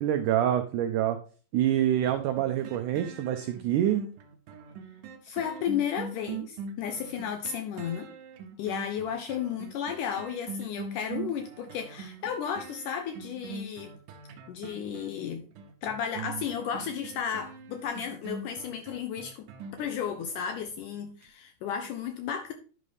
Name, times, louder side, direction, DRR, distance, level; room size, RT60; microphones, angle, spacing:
voice 1, 0.0-1.2 1.5-4.0, right 11 dB, 90° right, 1.7 m, -26 dB
sound 1, 2.1-20.8 21.2-21.3, right 5 dB, 70° right, 2.1 m, -42 dB
voice 2, 5.2-8.1 8.6-13.9 14.5-15.4 15.8-19.5 19.8-22.5, left 8 dB, 80° left, 1.9 m, -33 dB
10.5 x 5.4 x 3.3 m
omnidirectional pair, 4.3 m